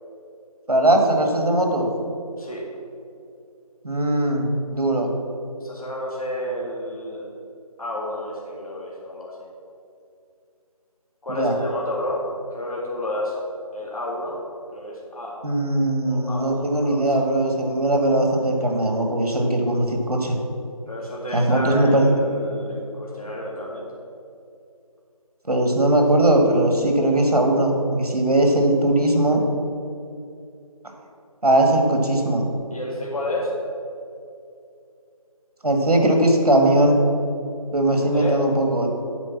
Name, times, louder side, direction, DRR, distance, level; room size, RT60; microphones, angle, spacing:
voice 1, 0.7-1.9 3.8-5.1 11.3-11.5 15.4-20.4 21.3-22.0 25.4-29.4 31.4-32.4 35.6-37.0 37.7-38.9, right 1 dB, 90° right, 2 dB, 1.9 m, -19 dB
voice 2, 5.6-7.3 7.8-9.4 11.2-13.4 13.7-14.4 14.7-15.4 16.1-17.1 20.9-23.8 32.7-33.5 37.9-38.4, left 1 dB, 70° left, -4 dB, 2.0 m, -30 dB
8.3 x 5.0 x 7.3 m, 2.5 s
figure-of-eight pair, 165°, 19 cm